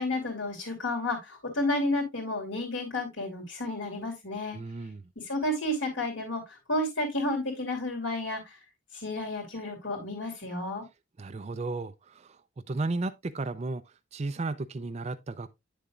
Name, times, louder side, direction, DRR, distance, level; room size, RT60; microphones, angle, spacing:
voice 1, 0.0-4.6 5.2-8.5 8.9-10.8, left 1 dB, 65° left, 2.9 m, -31 dB
voice 2, 4.5-5.0 11.2-12.4 12.7-13.8 14.1-15.5, right 3 dB, 35° right, 0.4 m, -34 dB
9.7 x 6.7 x 2.4 m
head